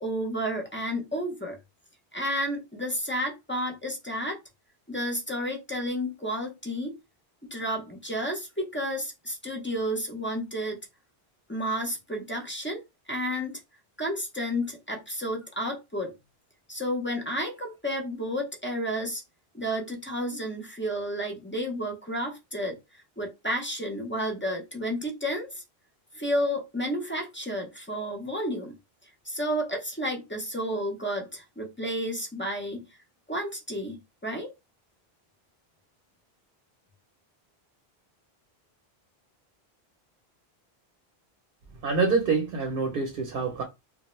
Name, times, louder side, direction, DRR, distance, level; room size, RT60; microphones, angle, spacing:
voice 1, 0.0-1.6 2.1-4.4 4.9-6.9 7.4-10.8 11.5-12.8 13.1-13.6 14.0-16.1 16.7-19.2 19.5-25.6 26.1-28.8 29.0-32.8 33.3-34.0 34.2-34.5, equal, 15° left, 0.4 m, -31 dB
voice 2, 41.8-43.6, right 4 dB, 65° right, 0.8 m, -26 dB
2.4 x 2.1 x 3.0 m
omnidirectional pair, 1.1 m